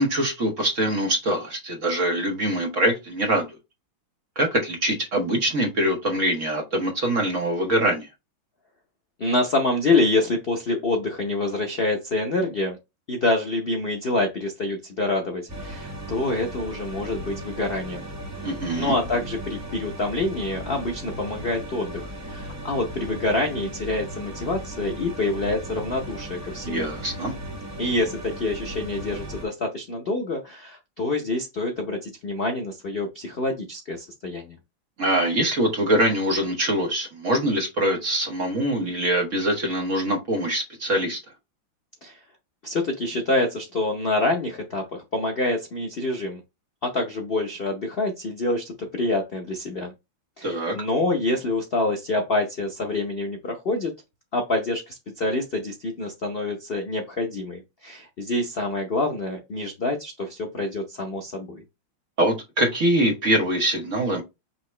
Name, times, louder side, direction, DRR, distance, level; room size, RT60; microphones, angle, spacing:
voice 1, 0.0-3.5 4.4-8.1 18.4-18.9 26.6-27.3 35.0-41.2 50.4-50.8 62.2-64.2, right 1 dB, 45° right, 1.3 m, -23 dB
voice 2, 9.2-12.8 13.1-18.0 18.7-26.9 27.8-34.6 42.0-42.2 42.6-46.4 46.8-49.9 50.4-53.9 54.3-61.6, left 2 dB, 75° left, 0.5 m, -26 dB
sound 1, 15.5-29.4, right 1 dB, 15° right, 0.6 m, -36 dB
5.8 x 2.8 x 3.2 m
omnidirectional pair, 2.2 m